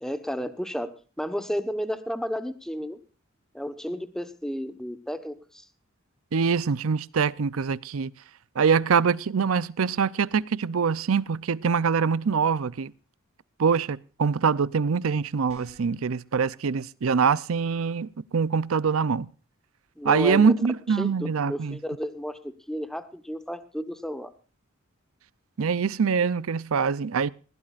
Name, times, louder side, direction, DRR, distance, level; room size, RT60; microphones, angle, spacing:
voice 1, 0.0-3.0 3.5-5.6 20.0-20.5 21.0-24.3, equal, ahead, 1.1 m, -32 dB
voice 2, 6.3-8.1 8.6-12.9 13.6-19.3 20.0-21.8 25.6-27.3, right 6 dB, 75° right, 0.5 m, -24 dB
sound 1, 15.5-16.0, right 1 dB, 30° right, 7.1 m, -49 dB
20.5 x 15.5 x 2.5 m
head